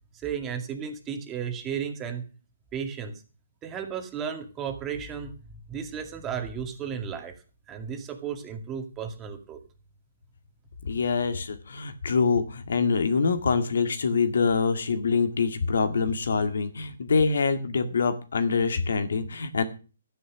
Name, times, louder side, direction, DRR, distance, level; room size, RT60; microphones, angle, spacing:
voice 1, 0.1-2.2 2.7-3.2 3.6-5.3 5.7-7.3 7.7-9.6, right 7 dB, 15° right, 6 dB, 2.2 m, -34 dB
voice 2, 10.8-19.6, left 5 dB, 75° left, 9 dB, 2.1 m, -25 dB
12.5 x 10.0 x 6.2 m, 0.35 s
hypercardioid pair, 150°, 0 cm